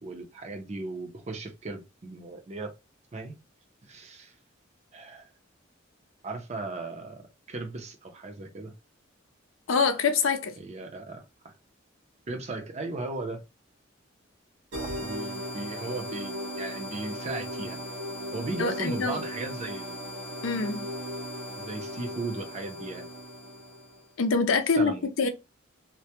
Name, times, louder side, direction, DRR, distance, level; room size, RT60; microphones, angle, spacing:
voice 1, 0.0-2.7 3.1-3.4 3.8-4.3 4.9-5.3 6.2-8.7 10.6-11.5 12.3-13.4 14.8-17.8 18.3-20.0 21.5-23.1 24.7-25.1, right 2 dB, 35° right, 0.5 m, -37 dB
voice 2, 9.7-10.5 18.6-19.2 20.4-20.9 24.2-25.3, left 4 dB, 90° left, 0.5 m, -25 dB
sound 1, 14.7-24.1, equal, 70° right, 0.7 m, -37 dB
2.2 x 2.0 x 2.8 m
head